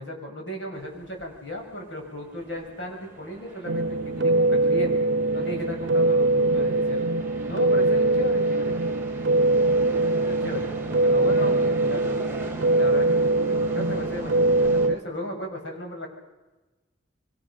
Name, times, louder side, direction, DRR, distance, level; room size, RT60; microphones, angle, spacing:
voice 1, 0.0-5.1 5.3-7.1 7.5-8.8 10.0-12.3 12.8-16.1, equal, 75° left, 1 dB, 7.7 m, -35 dB
sound 1, 0.7-14.9, right 1 dB, 15° right, 3.1 m, -42 dB
sound 2, 3.7-14.9, right 2 dB, 70° right, 0.8 m, -22 dB
26.0 x 24.0 x 6.7 m, 1.1 s
head